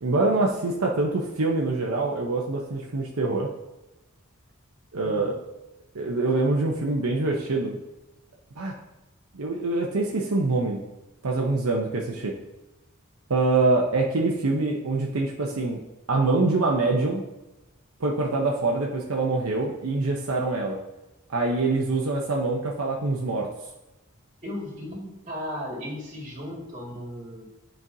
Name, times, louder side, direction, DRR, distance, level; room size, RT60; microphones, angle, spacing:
voice 1, 0.0-3.5 4.9-5.4 5.9-7.8 8.6-8.7 9.3-10.8 11.2-12.3 13.3-15.8 16.1-17.2 18.0-20.8 21.3-23.5, right 3 dB, 80° right, -1 dB, 0.8 m, -25 dB
voice 2, 5.0-5.3 24.4-27.4, left 1 dB, 35° right, -3 dB, 2.0 m, -36 dB
9.8 x 4.4 x 2.7 m, 0.99 s
head